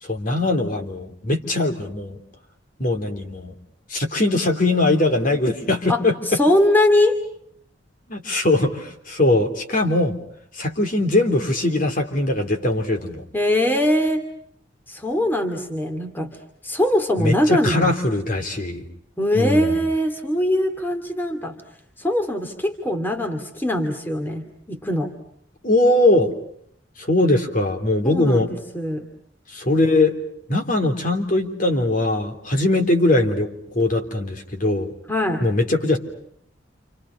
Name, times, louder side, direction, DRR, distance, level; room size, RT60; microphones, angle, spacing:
voice 1, 0.0-2.2 2.8-3.5 3.9-6.1 8.1-10.2 10.6-13.2 17.2-18.9 19.4-19.8 25.6-26.3 27.0-28.5 29.5-30.2 30.5-34.9 35.4-36.0, left 2 dB, 50° left, 3 dB, 3.5 m, -21 dB
voice 2, 5.9-7.2 13.3-14.2 14.9-16.4 16.6-18.0 19.2-21.6 22.0-25.1 28.0-29.1 35.1-35.4, left 1 dB, 10° left, 5 dB, 2.5 m, -22 dB
29.0 x 28.5 x 5.6 m, 0.69 s
head